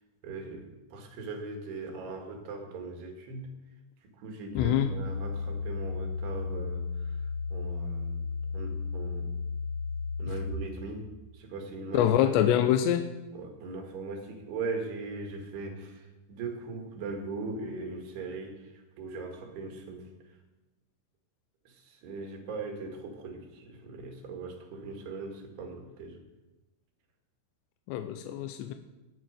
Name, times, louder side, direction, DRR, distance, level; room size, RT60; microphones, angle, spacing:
voice 1, 0.2-3.5 4.2-7.2 7.5-8.2 8.5-9.3 10.2-11.1 11.3-12.1 13.3-18.7 19.0-20.1 21.7-26.2, right 3 dB, 70° right, 2 dB, 4.1 m, -39 dB
sound 1, 4.5-10.5, left 4 dB, 35° left, 0.6 m, -34 dB
voice 2, 4.6-4.9 11.9-13.1 27.9-28.7, left 11 dB, 90° left, 7 dB, 2.8 m, -25 dB
19.5 x 9.0 x 5.2 m, 1.1 s
omnidirectional pair, 5.0 m